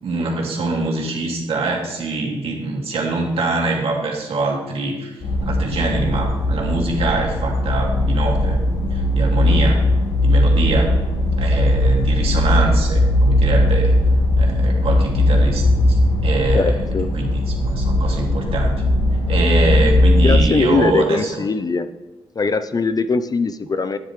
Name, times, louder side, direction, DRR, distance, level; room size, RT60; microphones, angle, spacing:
voice 1, 0.0-8.6 8.9-9.9 10.2-11.0 11.4-14.0 14.3-16.7 17.1-18.8 19.3-21.4, right 3 dB, 70° right, -1 dB, 2.4 m, -24 dB
sound 1, 5.2-20.4, left 1 dB, 70° left, 2.8 m, -18 dB
voice 2, 16.5-17.1 20.2-21.9 22.4-24.0, left 4 dB, 35° left, 12 dB, 0.6 m, -21 dB
10.5 x 10.0 x 3.3 m, 1.1 s
cardioid pair, 65°, 10 cm